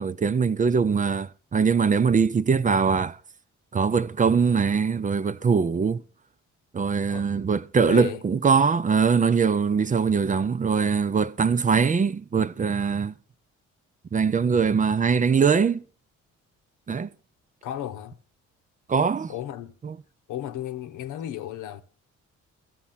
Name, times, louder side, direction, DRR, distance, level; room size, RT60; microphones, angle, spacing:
voice 1, 0.0-3.2 3.7-6.0 6.7-13.1 14.1-15.8 16.9-17.1 18.9-19.3 19.8-20.0, right 5 dB, 25° right, 0.5 m, -22 dB
voice 2, 7.9-8.2 17.6-18.2 19.3-19.7 20.3-21.8, left 12 dB, 90° left, 1.0 m, -34 dB
12.0 x 7.3 x 5.7 m
cardioid pair, 90°, 30 cm